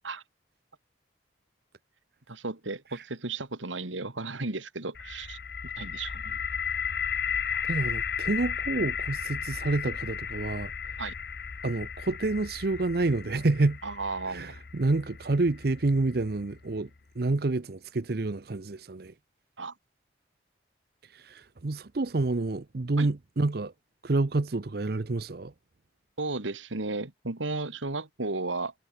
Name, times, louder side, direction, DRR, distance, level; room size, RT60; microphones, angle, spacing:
voice 1, 2.3-5.4 5.8-6.4 7.5-7.7 11.0-11.1 13.8-14.5 19.6-19.7 23.0-23.1 26.2-28.7, right 3 dB, 90° right, 2.2 m, -34 dB
sound 1, 4.9-16.8, left 7 dB, 55° left, 0.7 m, -35 dB
voice 2, 7.7-10.7 11.6-13.8 14.3-16.9 17.2-19.1 21.0-23.7 24.0-25.5, right 2 dB, 55° right, 0.7 m, -28 dB
head